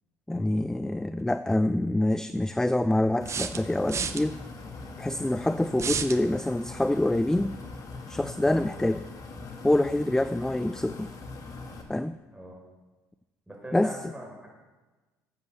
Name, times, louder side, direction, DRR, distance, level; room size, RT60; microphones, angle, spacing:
voice 1, 0.3-4.4 5.0-7.5 8.1-9.1 9.6-11.1 11.9-12.2 13.7-14.0, left 1 dB, 5° left, 13 dB, 0.5 m, -26 dB
sound 1, 1.2-1.3 3.3-4.2 5.8-6.2, right 6 dB, 40° right, 0.9 m, -31 dB
sound 2, 3.2-11.8, left 3 dB, 50° left, 2.3 m, -42 dB
voice 2, 13.5-14.5, right 1 dB, 10° right, 0 dB, 4.9 m, -42 dB
12.5 x 8.0 x 6.8 m, 1.2 s
hypercardioid pair, 70°, 8 cm